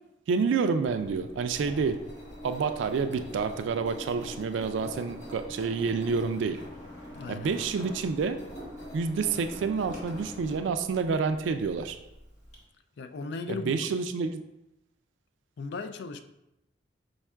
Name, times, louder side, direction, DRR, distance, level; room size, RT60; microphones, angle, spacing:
voice 1, 0.3-2.0 2.4-6.6 7.3-8.4 8.9-12.0 13.5-14.4, right 5 dB, 85° right, 0.3 m, -28 dB
Engine, 0.9-12.6, left 1 dB, 40° left, 1.4 m, -44 dB
voice 2, 7.1-7.5 13.0-13.9 15.6-16.2, left 4 dB, 65° left, 0.3 m, -37 dB
5.1 x 2.4 x 4.3 m
head